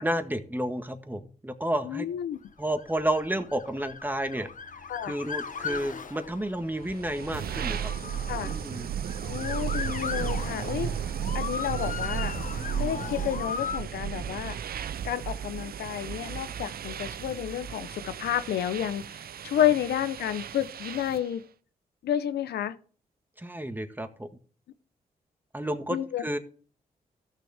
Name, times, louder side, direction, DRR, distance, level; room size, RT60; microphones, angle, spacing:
voice 1, 0.0-2.1 2.6-4.5 5.0-7.9 8.4-8.9 19.6-19.7 23.4-24.3 25.5-26.4, right 1 dB, 10° right, 1.7 m, -31 dB
voice 2, 1.8-2.4 4.9-5.1 8.3-8.5 9.2-10.9 11.3-12.3 12.8-14.6 15.0-21.4 22.0-22.7 25.9-26.4, left 10 dB, 80° left, 0.8 m, -30 dB
Motor vehicle (road) / Siren, 2.7-13.8, left 5 dB, 50° left, 1.2 m, -38 dB
sound 1, 6.7-21.3, right 9 dB, 65° right, 0.6 m, -34 dB
14.0 x 6.7 x 3.5 m
supercardioid pair, 45°, 17 cm